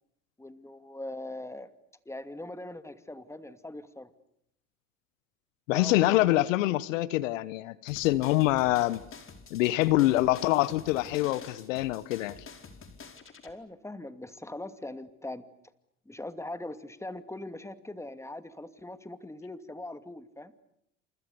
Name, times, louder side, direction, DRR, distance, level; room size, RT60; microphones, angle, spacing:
voice 1, 0.4-1.7 2.1-4.1 5.7-6.5 13.4-15.5 16.1-20.5, left 1 dB, 5° left, 2.6 m, -41 dB
voice 2, 5.7-9.0 9.5-12.4, left 17 dB, 75° left, 1.1 m, -25 dB
sound 1, 7.9-13.5, left 5 dB, 35° left, 4.8 m, -48 dB
30.0 x 27.5 x 7.0 m
hypercardioid pair, 70°, 38 cm